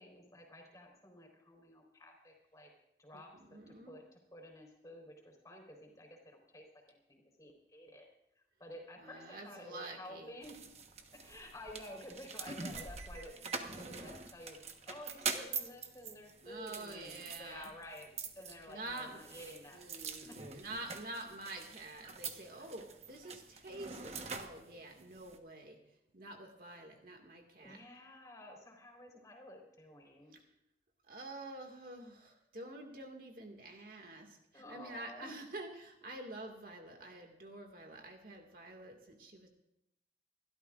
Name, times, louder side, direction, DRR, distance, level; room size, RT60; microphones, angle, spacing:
voice 1, 0.0-2.7 3.0-8.1 8.4-10.6 11.1-14.6 14.9-19.8 20.3-20.4 22.5-22.6 27.6-30.4 34.5-35.4, left 1 dB, 20° left, 2 dB, 4.1 m, -52 dB
voice 2, 3.1-4.0 9.0-10.4 16.4-17.7 18.7-19.2 19.7-27.8 30.3-30.5 31.1-39.5, right 2 dB, 55° right, 2 dB, 2.1 m, -48 dB
sound 1, 10.4-25.4, right 5 dB, 35° right, 1.2 m, -45 dB
28.0 x 13.0 x 2.5 m, 0.82 s
head